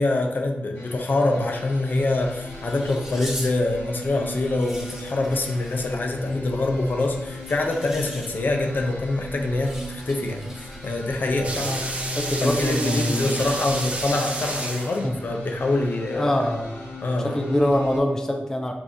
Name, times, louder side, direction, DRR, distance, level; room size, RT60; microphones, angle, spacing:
voice 1, 0.0-11.7 12.4-16.4 17.0-17.5, left 2 dB, 60° left, 2 dB, 0.6 m, -25 dB
sound 1, 0.7-18.0, left 1 dB, 80° left, 1.0 m, -38 dB
sound 2, 1.7-14.5, equal, 10° right, 0.9 m, -42 dB
sound 3, 11.4-15.3, right 2 dB, 35° right, 0.7 m, -30 dB
voice 2, 12.2-13.3 15.0-15.1 16.1-16.8 17.2-18.7, left 1 dB, 15° left, 3 dB, 0.4 m, -24 dB
5.1 x 2.6 x 2.6 m, 0.92 s
cardioid pair, 60°, 4 cm